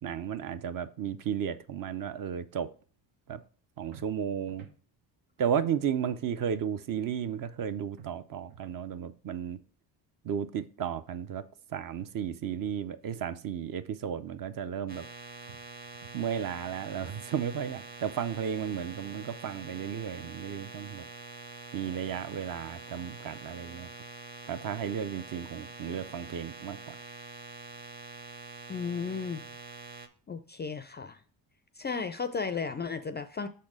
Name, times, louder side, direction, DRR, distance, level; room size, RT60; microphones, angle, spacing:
voice 1, 0.0-2.7 3.3-3.4 3.8-4.7 5.4-9.6 10.2-11.4 11.7-15.0 16.1-21.1 21.7-23.9 24.5-27.0, right 8 dB, 50° right, 0.6 m, -34 dB
sound 1, 3.9-4.8 8.0-8.9 12.0-12.9 15.5-16.4, right 7 dB, 85° right, 1.0 m, -54 dB
sound 2, 14.9-30.1, right 3 dB, 20° right, 0.8 m, -46 dB
voice 2, 28.7-29.4 30.3-31.2 31.8-33.5, left 5 dB, 25° left, 0.3 m, -34 dB
6.3 x 4.3 x 4.9 m
cardioid pair, 105°, 44 cm